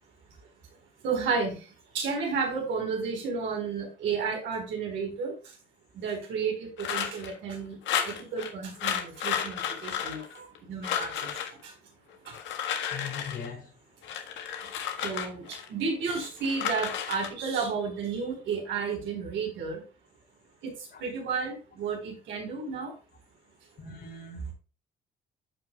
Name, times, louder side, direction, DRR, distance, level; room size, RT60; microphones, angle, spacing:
voice 1, 1.0-1.6 1.9-5.3 6.0-7.8 8.0-11.3 11.6-11.7 15.0-15.4 15.7-19.8 20.6-20.7 21.0-22.9, right 5 dB, 90° right, 4.1 m, -32 dB
sound 1, 6.8-7.3 7.8-8.5 8.8-10.6 10.8-11.5 12.2-13.5 14.0-15.7 16.1-17.3, left 9 dB, 90° left, 1.5 m, -32 dB
voice 2, 12.9-13.7 20.9-21.0 23.8-24.5, left 5 dB, 60° left, 4.7 m, -40 dB
13.5 x 5.5 x 2.3 m
cardioid pair, 95°, 19 cm